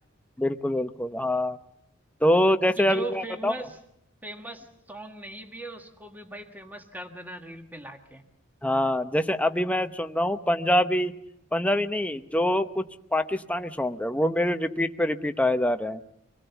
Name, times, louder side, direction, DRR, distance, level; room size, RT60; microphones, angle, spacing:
voice 1, 0.4-1.6 2.2-3.5 8.6-11.1 11.5-12.8 13.1-16.0, left 1 dB, 5° left, 8 dB, 0.8 m, -25 dB
voice 2, 2.8-3.8 4.2-8.2, right 2 dB, 10° right, 5 dB, 1.7 m, -39 dB
25.0 x 18.5 x 7.0 m, 0.79 s
head